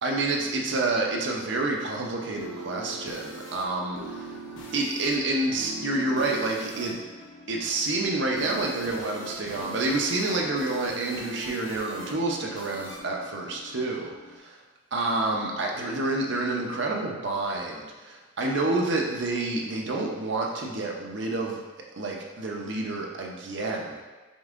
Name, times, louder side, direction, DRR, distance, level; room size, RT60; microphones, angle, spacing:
voice 1, 0.0-4.3 4.7-7.0 7.5-14.5 14.9-21.6 22.0-24.0, right 2 dB, 55° right, -1 dB, 0.6 m, -28 dB
sound 1, 2.0-14.4, right 1 dB, 60° left, 0.7 m, -41 dB
5.3 x 3.5 x 2.5 m, 1.3 s
head